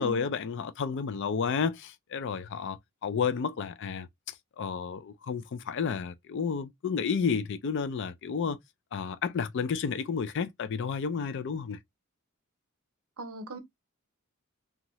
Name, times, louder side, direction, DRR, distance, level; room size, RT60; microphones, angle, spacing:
voice 1, 0.0-4.1 4.6-8.6 8.9-11.8, left 6 dB, 55° left, 0.4 m, -31 dB
voice 2, 13.2-13.6, equal, 70° right, 0.7 m, -39 dB
2.7 x 2.4 x 3.0 m
head